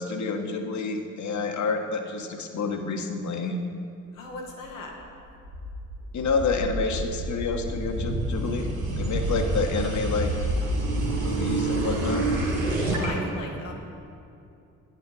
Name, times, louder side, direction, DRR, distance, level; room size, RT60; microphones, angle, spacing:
voice 1, 0.0-3.6 6.1-10.5 11.2-12.3, left 4 dB, 50° left, 5 dB, 1.2 m, -28 dB
voice 2, 4.1-5.0 9.4-9.5 12.9-13.7, left 2 dB, 85° left, 1 dB, 1.1 m, -37 dB
sound 1, 5.0-13.1, right 2 dB, 85° right, 1.5 m, -28 dB
9.7 x 8.3 x 5.5 m, 2.6 s
hypercardioid pair, 45°, 38 cm